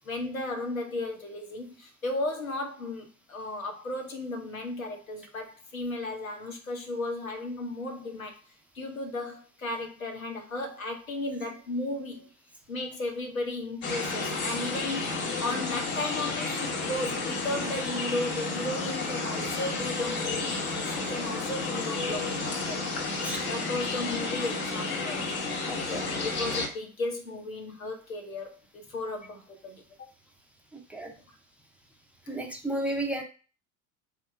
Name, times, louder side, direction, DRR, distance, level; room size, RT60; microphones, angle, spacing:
voice 1, 0.0-8.4 8.7-12.3 12.7-22.8 23.2-25.3 26.1-29.8, left 2 dB, 80° left, 0.9 m, -35 dB
sound 1, 13.8-26.7, left 3 dB, 25° left, 1.0 m, -31 dB
voice 2, 25.7-26.1 30.9-31.1 32.3-33.2, right 1 dB, 5° right, 0.7 m, -32 dB
3.6 x 2.2 x 4.4 m
figure-of-eight pair, 75°, 40 cm